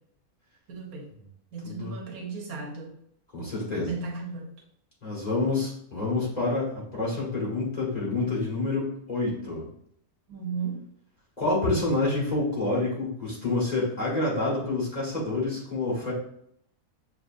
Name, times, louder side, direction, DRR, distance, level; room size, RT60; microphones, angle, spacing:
voice 1, 0.7-1.1 1.5-3.0 3.9-4.5 10.3-10.8, right 4 dB, 70° right, 1 dB, 1.2 m, -35 dB
voice 2, 1.6-2.0 3.3-3.9 5.0-9.7 11.4-16.1, left 2 dB, 30° left, -6 dB, 1.3 m, -28 dB
6.3 x 2.9 x 2.4 m, 0.70 s
omnidirectional pair, 1.7 m